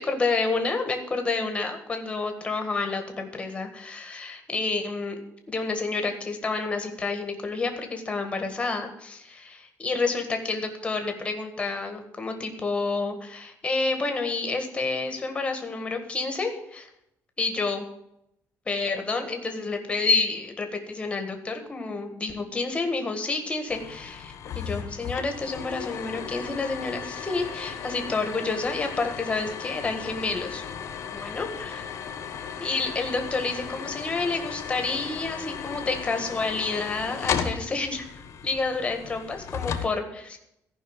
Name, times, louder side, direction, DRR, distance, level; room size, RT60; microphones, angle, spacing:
voice 1, 0.0-5.2 5.5-16.9 17.4-17.9 18.7-30.6 31.1-31.9 32.6-40.4, left 3 dB, 20° left, 5 dB, 1.6 m, -29 dB
sound 1, 23.7-39.9, left 7 dB, 50° left, 1.2 m, -35 dB
14.0 x 5.6 x 8.9 m, 0.80 s
cardioid pair, 170°, 6 cm